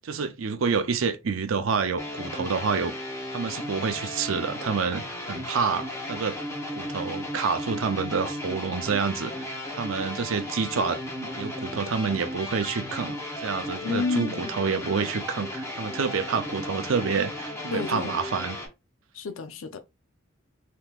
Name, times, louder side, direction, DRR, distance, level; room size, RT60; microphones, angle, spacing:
voice 1, 0.0-2.9 3.3-6.4 6.7-13.2 13.4-18.6, right 5 dB, 85° right, 0.5 m, -28 dB
sound 1, 2.0-18.7, left 1 dB, 15° left, 0.8 m, -35 dB
voice 2, 13.8-14.5 17.7-18.2 19.1-19.8, left 4 dB, 85° left, 0.5 m, -30 dB
3.7 x 2.8 x 2.4 m
head